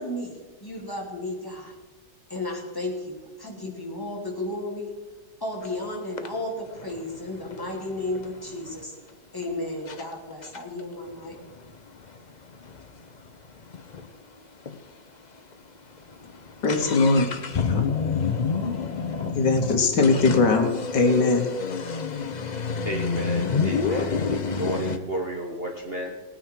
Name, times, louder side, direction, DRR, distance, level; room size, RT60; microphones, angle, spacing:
voice 1, 0.0-1.8 2.3-4.9 5.4-8.9 9.3-11.4, left 1 dB, 10° left, -2 dB, 2.9 m, -33 dB
sound 1, 5.6-5.7 6.2-8.8 9.4-9.5 9.9-10.0 10.4-14.1 14.4-14.5 14.7-14.8 15.4-15.5 15.8-25.0, left 5 dB, 50° left, 0.5 m, -29 dB
voice 2, 16.6-17.3 17.7-17.9 19.3-21.5, left 3 dB, 70° left, 6 dB, 1.8 m, -21 dB
voice 3, 22.8-26.2, right 1 dB, 35° right, 1 dB, 1.4 m, -32 dB
19.0 x 9.5 x 4.6 m, 1.3 s
omnidirectional pair, 2.0 m